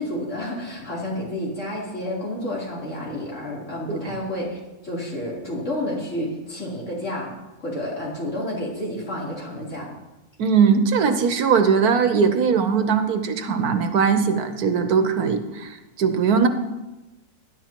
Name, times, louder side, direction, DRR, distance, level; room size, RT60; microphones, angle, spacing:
voice 1, 0.0-7.3 7.6-9.9, left 1 dB, 50° left, -5 dB, 3.8 m, -30 dB
voice 2, 10.4-16.5, right 6 dB, 75° right, 7 dB, 1.4 m, -20 dB
20.5 x 10.5 x 3.0 m, 1.0 s
omnidirectional pair, 1.6 m